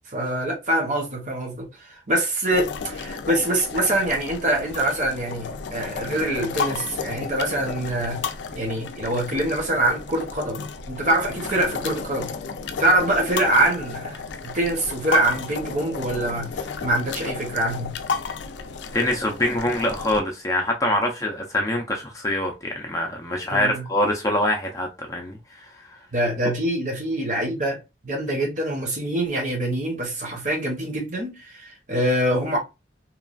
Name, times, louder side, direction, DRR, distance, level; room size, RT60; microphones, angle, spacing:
voice 1, 0.1-8.2 8.6-12.3 12.8-17.9 23.5-23.9 26.1-32.6, right 1 dB, 45° right, 0.9 m, -24 dB
sound 1, 2.5-20.2, left 5 dB, 80° left, 0.4 m, -33 dB
voice 2, 18.9-26.0, left 1 dB, 15° left, 0.5 m, -25 dB
3.0 x 2.3 x 2.3 m
head